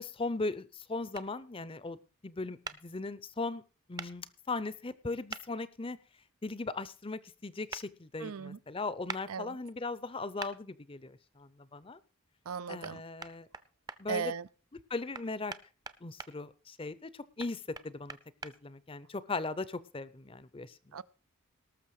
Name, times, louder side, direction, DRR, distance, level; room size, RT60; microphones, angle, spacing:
voice 1, 0.0-2.0 2.2-3.6 3.9-6.0 6.4-12.0 12.7-13.5 14.0-14.3 14.9-15.5 16.0-18.2 18.4-20.8, left 3 dB, 25° left, 0.6 m, -38 dB
sound 1, 1.1-1.3 2.6-2.8 4.0-4.1 5.3-5.4 7.7-7.8 9.1-9.2 10.4-10.5 12.8-12.9 13.2-14.0 15.1-16.3 17.4-18.5, right 4 dB, 20° right, 0.6 m, -42 dB
voice 2, 8.2-8.6 9.3-9.6 12.5-13.0 14.1-14.5 20.9-21.0, right 6 dB, 80° right, 0.5 m, -37 dB
18.5 x 6.6 x 4.8 m
head